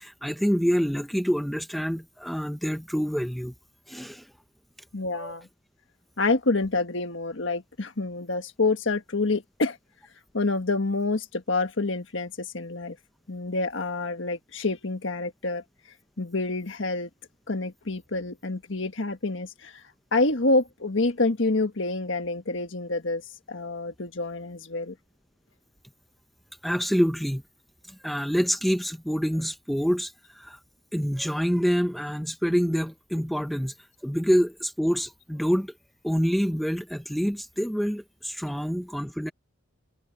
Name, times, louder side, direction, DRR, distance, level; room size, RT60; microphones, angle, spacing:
voice 1, 0.0-3.5 3.9-4.2 5.2-5.3 26.6-27.4 27.9-30.6 30.9-33.7 34.0-35.7 36.0-39.3, equal, ahead, 0.8 m, -26 dB
voice 2, 4.9-5.5 6.2-9.8 10.3-13.0 13.3-15.6 16.2-17.1 17.5-19.8 20.1-23.2 23.5-24.9, left 3 dB, 65° left, 1.5 m, -27 dB
head